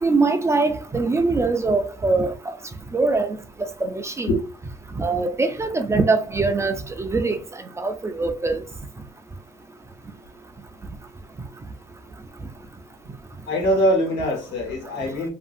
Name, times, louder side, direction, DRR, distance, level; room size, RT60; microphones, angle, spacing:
voice 1, 0.0-2.3 2.9-3.4 3.9-4.3 5.0-7.4 7.8-8.6, right 3 dB, 15° right, 0.3 m, -22 dB
voice 2, 13.5-15.3, equal, 85° left, 1.2 m, -22 dB
2.7 x 2.6 x 2.4 m
cardioid pair, 110°, 17 cm